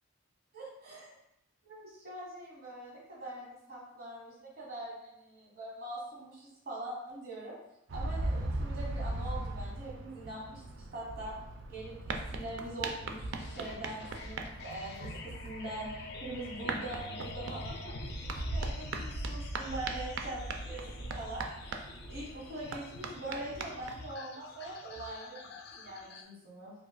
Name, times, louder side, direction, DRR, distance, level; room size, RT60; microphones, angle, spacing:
voice 1, 0.5-1.2 1.6-7.6 7.9-11.3 11.7-21.5 22.1-26.7, right 1 dB, 50° right, -5 dB, 1.1 m, -43 dB
sound 1, 7.9-24.0, right 2 dB, 65° right, 0.3 m, -39 dB
sound 2, 13.4-26.2, left 3 dB, 50° left, 0.3 m, -48 dB
4.8 x 2.3 x 2.2 m, 0.81 s
head